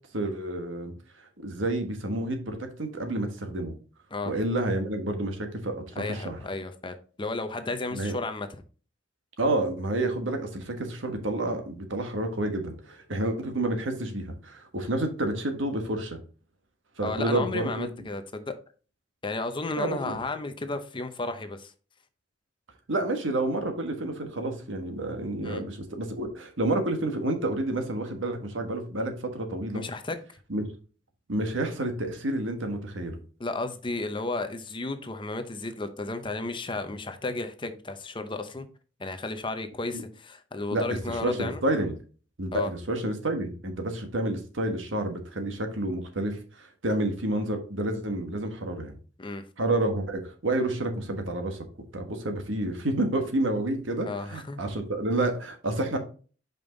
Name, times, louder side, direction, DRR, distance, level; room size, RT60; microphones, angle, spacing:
voice 1, 0.1-0.9 1.2-3.7 4.2-5.8 6.1-6.4 7.9-8.1 9.4-16.2 17.0-17.9 19.8-20.2 22.9-29.8 30.5-30.7 31.3-33.2 39.9-40.0 40.7-41.9 42.4-48.9 49.6-51.6 51.9-56.0, right 1 dB, 85° right, 1.4 m, -29 dB
voice 2, 5.9-8.5 14.8-14.9 17.0-18.5 19.2-21.7 25.4-25.6 29.7-30.2 33.4-38.7 39.0-41.6 42.5-42.7 49.2-49.4 54.0-54.6, left 2 dB, 25° left, 0.7 m, -33 dB
5.4 x 5.3 x 3.9 m
head